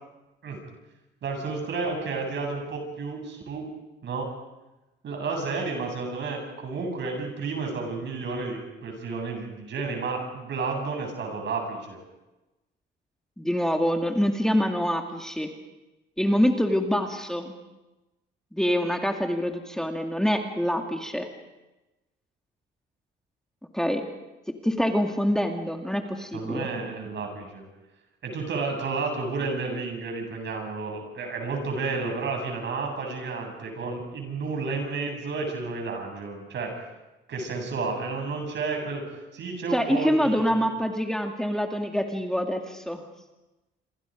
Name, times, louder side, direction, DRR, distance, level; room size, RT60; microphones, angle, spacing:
voice 1, 1.2-3.7 4.0-4.3 5.0-12.0 26.3-27.6 28.2-36.7 37.3-39.0 39.3-40.7, right 4 dB, 65° right, 3 dB, 8.0 m, -31 dB
voice 2, 13.4-15.5 16.2-17.5 18.5-21.3 23.7-24.1 24.5-26.7 39.7-43.0, equal, 5° left, 3 dB, 2.2 m, -25 dB
26.5 x 26.5 x 5.2 m, 1.0 s
cardioid pair, 90°, 20 cm